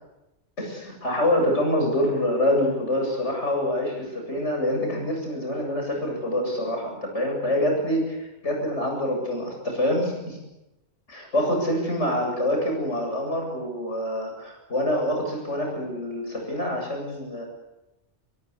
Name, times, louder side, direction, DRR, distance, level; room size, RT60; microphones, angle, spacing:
voice 1, 0.6-10.4 11.1-17.5, left 1 dB, 75° left, 1 dB, 8.4 m, -26 dB
24.5 x 22.5 x 8.4 m, 0.96 s
omnidirectional pair, 1.2 m